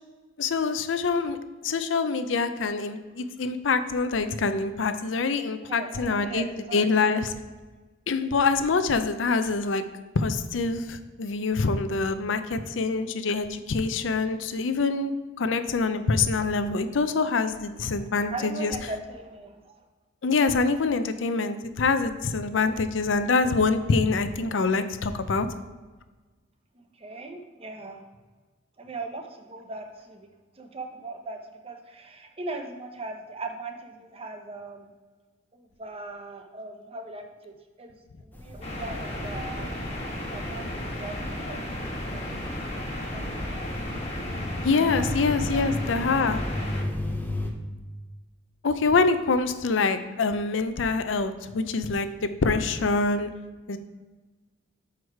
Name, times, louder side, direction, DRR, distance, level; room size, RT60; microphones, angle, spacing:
voice 1, 0.4-1.4 1.6-6.5 6.7-7.3 8.1-9.8 10.2-15.1 15.4-18.7 20.2-25.5 44.6-46.4 48.6-53.3 53.7-53.8, left 4 dB, 75° left, 10 dB, 0.5 m, -25 dB
voice 2, 5.6-7.0 17.9-18.0 18.3-19.8 26.7-28.0 28.8-30.3 30.5-34.9 35.5-43.6 44.9-45.1 45.5-45.6 46.1-46.4, right 3 dB, 30° right, 4 dB, 0.7 m, -40 dB
sound 1, 38.3-47.5, left 1 dB, 10° left, 0.7 m, -35 dB
sound 2, 38.6-46.8, left 1 dB, 35° left, 1.5 m, -34 dB
6.2 x 4.8 x 4.7 m, 1.3 s
head